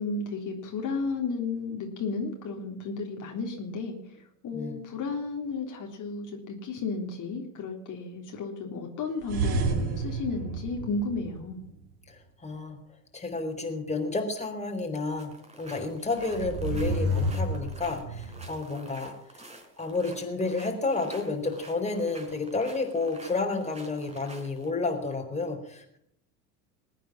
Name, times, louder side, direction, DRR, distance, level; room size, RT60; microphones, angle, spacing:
voice 1, 0.0-4.0 4.4-11.6, left 4 dB, 40° left, 1 dB, 3.7 m, -33 dB
sound 1, 9.2-11.7 16.2-18.5, right 1 dB, 70° right, 3.0 m, -30 dB
voice 2, 12.1-12.8 13.1-15.3 15.6-19.5 19.8-26.0, left 3 dB, 15° left, 3 dB, 4.2 m, -31 dB
sound 2, 15.2-24.7, right 1 dB, 15° right, 4.6 m, -48 dB
21.0 x 9.2 x 7.4 m, 0.71 s
hypercardioid pair, 80°, 46 cm